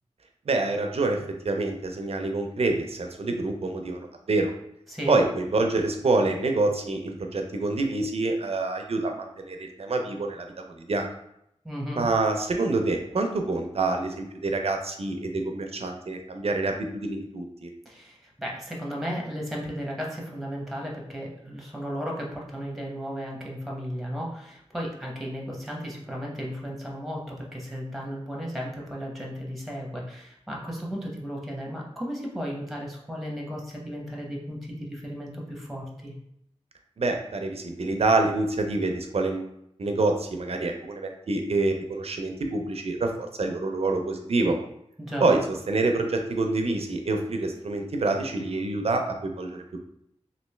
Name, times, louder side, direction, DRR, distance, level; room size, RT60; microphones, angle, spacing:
voice 1, 0.5-1.2 1.4-4.5 5.1-11.1 11.9-17.7 37.0-39.5 39.8-44.6 45.2-45.4 45.7-49.6, right 3 dB, 60° right, 4 dB, 0.5 m, -26 dB
voice 2, 11.6-12.0 17.8-36.1 45.0-45.3, equal, ahead, -2 dB, 0.8 m, -35 dB
3.1 x 2.6 x 3.1 m, 0.76 s
wide cardioid pair, 90°, 11 cm